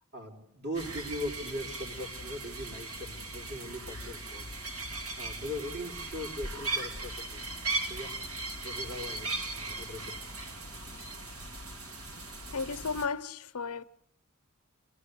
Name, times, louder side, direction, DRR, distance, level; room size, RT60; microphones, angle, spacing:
voice 1, 0.1-4.5 5.2-7.4 7.9-8.1 8.6-10.1, left 1 dB, 55° right, 4.6 m, -40 dB
sound 1, 0.7-13.1, right 2 dB, 75° right, 2.5 m, -38 dB
voice 2, 12.5-13.8, left 5 dB, 90° left, 0.8 m, -34 dB
28.0 x 17.5 x 8.2 m
head